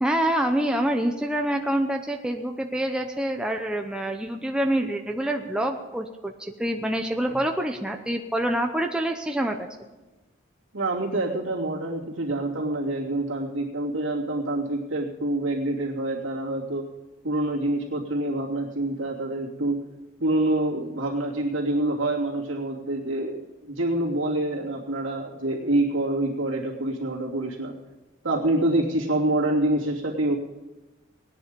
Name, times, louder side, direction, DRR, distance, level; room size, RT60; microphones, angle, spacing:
voice 1, 0.0-9.7, right 1 dB, 5° right, 3 dB, 0.7 m, -26 dB
voice 2, 10.7-16.9 17.2-19.8 20.2-27.7 28.2-30.3, right 1 dB, 75° right, -3 dB, 2.9 m, -26 dB
18.5 x 10.5 x 5.3 m, 1.1 s
head